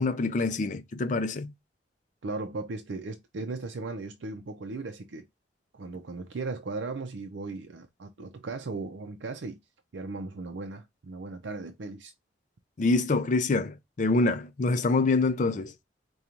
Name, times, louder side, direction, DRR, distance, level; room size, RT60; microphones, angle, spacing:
voice 1, 0.0-1.5 12.8-15.7, left 3 dB, 45° left, 0.4 m, -26 dB
voice 2, 2.2-5.3 5.7-9.6 9.9-12.1, right 3 dB, 80° right, 0.5 m, -37 dB
5.0 x 2.3 x 2.8 m
head